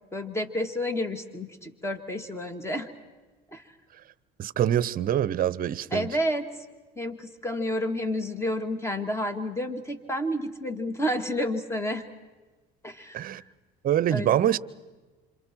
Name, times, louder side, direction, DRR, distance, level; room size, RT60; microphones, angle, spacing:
voice 1, 0.1-2.9 3.5-3.8 5.9-6.5 7.0-12.0 12.8-13.4 14.1-14.5, left 1 dB, 15° left, 2.2 m, -30 dB
voice 2, 4.4-6.1 13.1-13.4 13.8-14.6, right 11 dB, 45° right, 0.7 m, -25 dB
28.0 x 26.5 x 4.6 m
supercardioid pair, 100°, 20 cm